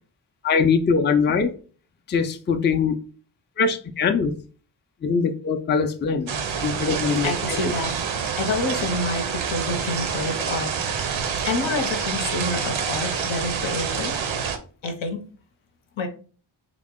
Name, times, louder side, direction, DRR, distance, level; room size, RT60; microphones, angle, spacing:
voice 1, 0.4-1.5 2.1-3.0 3.6-4.3 5.0-7.6, left 5 dB, 25° left, 0.3 m, -22 dB
sound 1, 6.3-14.6, right 6 dB, 85° right, 0.6 m, -27 dB
voice 2, 7.2-7.9 8.4-10.7 11.4-14.1 14.8-15.2 16.0-16.1, left 3 dB, 80° left, 0.8 m, -28 dB
3.6 x 2.0 x 3.6 m
wide cardioid pair, 70°, 45 cm